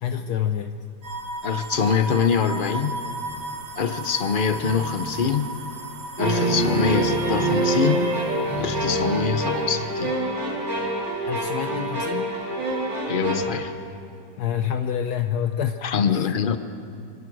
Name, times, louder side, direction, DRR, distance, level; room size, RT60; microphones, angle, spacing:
voice 1, 0.0-0.8 11.2-12.3 14.4-15.8 16.0-16.3, left 9 dB, 70° left, 7 dB, 1.2 m, -27 dB
sound 1, 1.0-10.1, right 2 dB, 50° right, 1.7 m, -36 dB
voice 2, 1.4-2.9 3.8-5.5 6.2-8.0 8.6-10.1 13.1-13.7 15.8-16.6, left 6 dB, 45° left, 10 dB, 0.7 m, -24 dB
Telephone, 3.2-3.5 4.4-5.5 6.4-7.7 8.4-9.1, right 1 dB, 25° right, 3.0 m, -35 dB
sound 2, 6.2-13.4, right 1 dB, 90° right, 4.3 m, -25 dB
25.5 x 16.5 x 6.2 m, 2.6 s
omnidirectional pair, 1.9 m